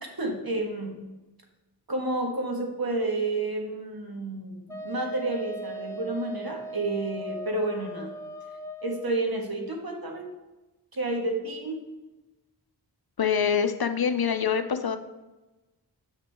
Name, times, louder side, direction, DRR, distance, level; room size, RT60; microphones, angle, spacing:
voice 1, 0.2-1.0 1.9-8.1 8.8-10.3 10.9-11.8, right 2 dB, 60° right, 1 dB, 1.5 m, -30 dB
Wind instrument woodwind instrument, 4.7-9.1, right 1 dB, 5° left, 0.6 m, -38 dB
voice 2, 13.2-15.0, left 7 dB, 60° left, 9 dB, 0.6 m, -25 dB
7.5 x 5.9 x 3.5 m, 1.1 s
wide cardioid pair, 55°, 42 cm